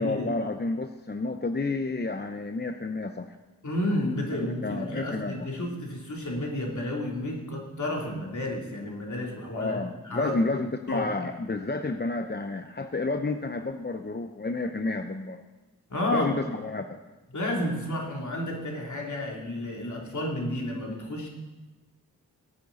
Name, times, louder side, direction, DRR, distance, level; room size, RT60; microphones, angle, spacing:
voice 1, 0.0-3.4 4.3-5.3 9.5-15.4 16.1-17.0, left 3 dB, 30° left, 7 dB, 0.8 m, -30 dB
voice 2, 3.6-10.6 10.9-11.1 15.9-16.3 17.3-21.3, left 1 dB, 55° left, -1 dB, 3.3 m, -31 dB
18.0 x 8.9 x 4.1 m, 1.2 s
cardioid pair, 45°, 36 cm